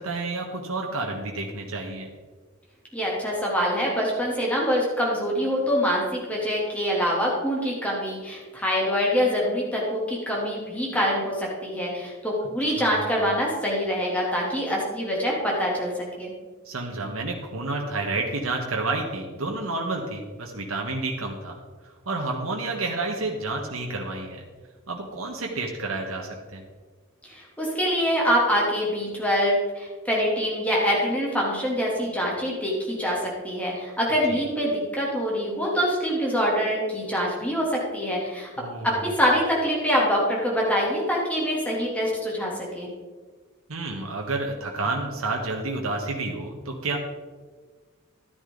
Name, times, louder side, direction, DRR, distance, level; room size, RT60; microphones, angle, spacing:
voice 1, 0.0-2.1 12.8-13.1 16.6-21.5 22.0-24.4 24.9-26.6 34.3-34.4 38.6-39.0 43.7-47.0, right 3 dB, 80° right, 0 dB, 1.4 m, -30 dB
voice 2, 2.9-15.9 16.2-16.3 27.3-38.5 38.8-42.9, equal, 5° left, -4 dB, 2.8 m, -25 dB
12.5 x 10.0 x 3.9 m, 1.4 s
head